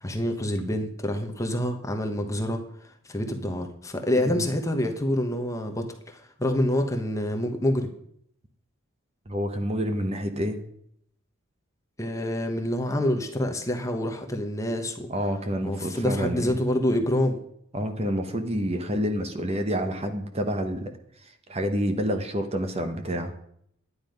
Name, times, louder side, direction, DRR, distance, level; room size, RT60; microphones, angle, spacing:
voice 1, 0.0-7.9 12.0-15.1 15.6-17.4, left 1 dB, 15° left, 4 dB, 1.1 m, -27 dB
voice 2, 9.3-10.6 15.1-16.5 17.7-20.9 21.2-23.3, equal, 30° right, 6 dB, 1.0 m, -28 dB
11.0 x 9.8 x 5.3 m, 0.70 s
head